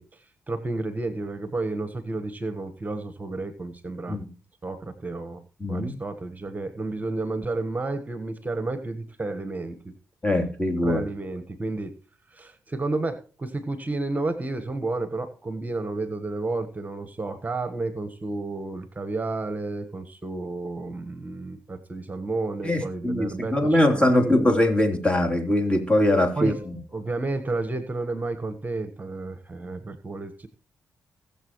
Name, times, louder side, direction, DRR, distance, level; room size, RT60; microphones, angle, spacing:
voice 1, 0.0-4.2 4.6-5.4 5.7-9.9 10.8-12.0 12.3-24.6 26.4-30.5, right 2 dB, 25° right, 10 dB, 1.3 m, -31 dB
voice 2, 5.6-5.9 10.2-11.0 22.6-26.5, left 1 dB, 20° left, 4 dB, 3.4 m, -22 dB
20.0 x 7.2 x 3.1 m, 0.38 s
supercardioid pair, 55°, 6 cm